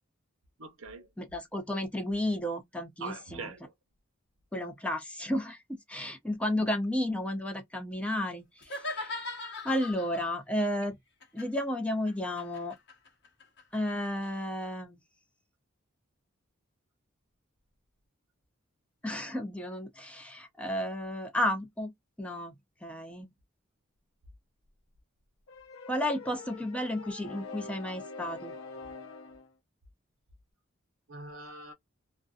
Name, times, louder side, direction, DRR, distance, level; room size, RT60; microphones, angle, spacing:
voice 1, 0.6-1.1 3.0-3.6 31.1-31.7, right 3 dB, 80° right, 0.7 m, -42 dB
voice 2, 1.2-3.5 4.5-9.2 9.6-11.0 11.3-12.8 13.7-15.0 19.0-21.9 22.2-22.5 22.8-23.3 25.9-28.5, left 1 dB, 5° left, 0.5 m, -32 dB
sound 1, 8.6-10.3 11.2-14.3, left 2 dB, 55° left, 1.0 m, -40 dB
sound 2, 25.5-29.5, left 4 dB, 85° left, 0.6 m, -45 dB
2.6 x 2.2 x 2.3 m
head